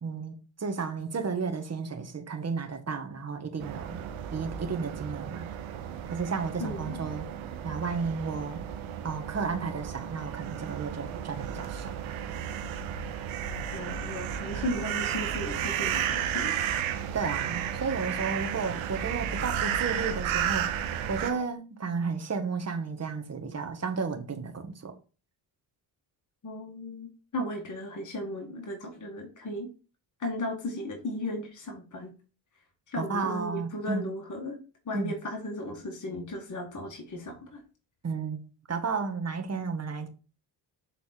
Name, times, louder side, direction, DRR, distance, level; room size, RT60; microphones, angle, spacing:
voice 1, 0.0-4.0 4.3-5.5 6.1-7.3 7.6-8.6 9.0-11.9 17.1-20.7 21.1-24.9 33.0-34.0 34.9-35.1 38.0-38.4 38.7-40.1, right 5 dB, 30° right, 1.6 m, -33 dB
sound 1, 3.6-21.3, right 9 dB, 80° right, 1.1 m, -33 dB
voice 2, 6.6-7.0 13.7-16.6 26.4-29.7 30.2-32.1 32.9-34.6 34.9-37.6, left 1 dB, 40° left, 2.0 m, -36 dB
7.0 x 4.0 x 4.5 m
supercardioid pair, 65°, 47 cm